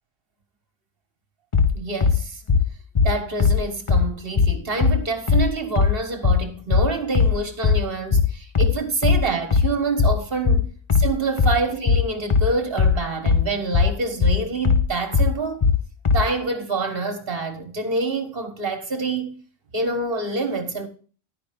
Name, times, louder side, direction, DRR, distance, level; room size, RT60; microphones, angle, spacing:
sound 1, 1.5-16.3, left 5 dB, 35° left, 0.6 m, -19 dB
voice 1, 1.7-2.4 3.0-10.7 11.0-15.6 16.1-19.4 19.7-20.9, right 3 dB, 60° right, 1.7 m, -26 dB
11.5 x 5.2 x 5.1 m
omnidirectional pair, 1.1 m